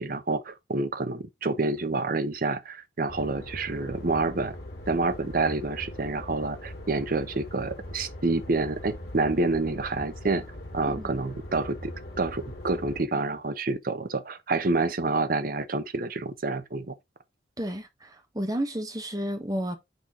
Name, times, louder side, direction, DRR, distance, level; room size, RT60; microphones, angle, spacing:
voice 1, 0.0-4.6 4.9-10.4 10.7-16.9, right 3 dB, 50° right, 0.7 m, -28 dB
sound 1, 3.1-13.0, left 1 dB, 55° left, 2.0 m, -41 dB
voice 2, 17.6-19.8, equal, 20° right, 1.2 m, -31 dB
6.4 x 4.5 x 3.7 m
head